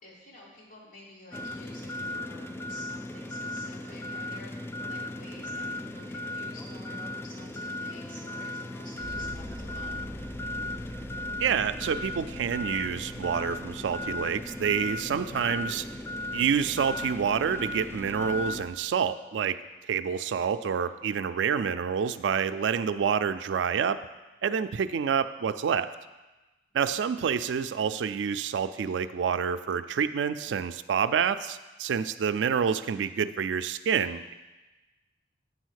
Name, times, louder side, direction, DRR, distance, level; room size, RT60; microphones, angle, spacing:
voice 1, 0.0-10.1 26.7-27.0, left 1 dB, 45° left, -6 dB, 2.5 m, -51 dB
sound 1, 1.3-18.6, left 1 dB, 15° left, 0.3 m, -36 dB
Bass guitar, 9.0-18.8, equal, 60° left, 1.3 m, -46 dB
voice 2, 11.4-15.8 16.3-19.6 19.9-24.0 24.4-25.9 26.7-34.3, right 7 dB, 90° right, 12 dB, 0.3 m, -28 dB
8.7 x 4.1 x 6.4 m, 1.1 s
head